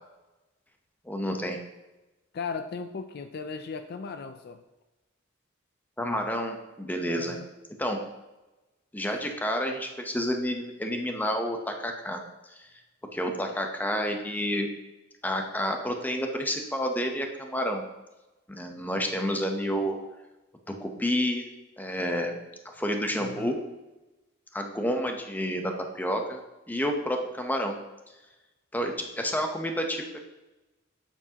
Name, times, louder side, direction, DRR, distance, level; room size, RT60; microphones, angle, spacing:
voice 1, 1.0-1.6 6.0-7.4 7.8-8.0 8.9-12.2 12.5-12.7 13.1-14.7 15.2-17.8 18.5-20.0 20.7-21.4 21.8-22.4 22.6-23.6 24.5-26.4 26.7-27.8 28.7-30.0, equal, 10° left, 4 dB, 0.8 m, -29 dB
voice 2, 2.3-4.6 7.1-7.5 23.2-23.6, left 5 dB, 55° left, 9 dB, 0.4 m, -37 dB
8.2 x 7.1 x 2.9 m, 1.1 s
head